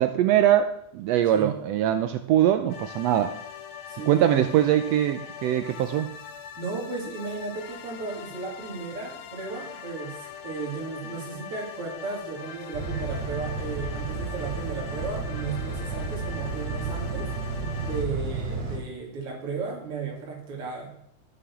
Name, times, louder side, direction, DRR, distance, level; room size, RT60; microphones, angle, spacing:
voice 1, 0.0-3.4 4.1-6.1, right 11 dB, 85° right, 9 dB, 1.5 m, -22 dB
sound 1, 2.7-18.1, left 8 dB, 70° left, 2.1 m, -41 dB
voice 2, 3.9-4.5 6.6-17.3 17.8-20.9, right 4 dB, 50° right, -1 dB, 3.2 m, -35 dB
sound 2, 12.7-18.8, right 4 dB, 65° right, 4.4 m, -32 dB
13.0 x 6.4 x 7.1 m, 0.71 s
omnidirectional pair, 3.6 m